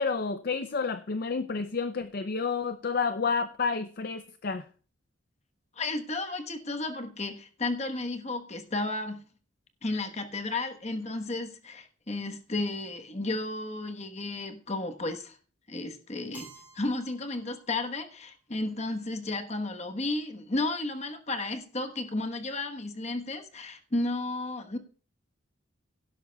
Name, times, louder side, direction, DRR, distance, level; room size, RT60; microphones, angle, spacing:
voice 1, 0.0-4.7, left 4 dB, 50° left, 0.5 m, -30 dB
voice 2, 5.8-9.2 9.8-15.4 15.7-24.8, left 2 dB, 35° left, 1.2 m, -33 dB
Keyboard (musical), 16.3-18.3, right 3 dB, 10° right, 2.6 m, -53 dB
16.5 x 12.0 x 2.3 m
head